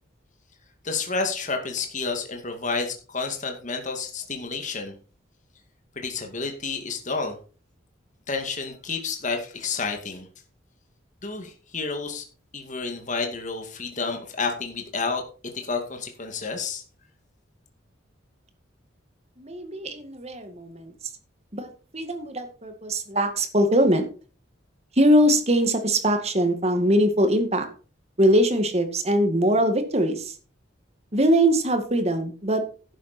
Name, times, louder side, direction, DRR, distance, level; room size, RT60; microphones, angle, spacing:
voice 1, 0.8-5.0 6.0-7.4 8.3-10.3 11.2-12.3 12.5-15.2 15.5-16.8, left 4 dB, 40° left, 4 dB, 2.3 m, -30 dB
voice 2, 19.4-20.9 21.5-24.1 25.0-27.7 28.2-30.4 31.1-32.6, equal, 35° right, 7 dB, 2.0 m, -22 dB
11.5 x 9.3 x 4.4 m, 0.37 s
head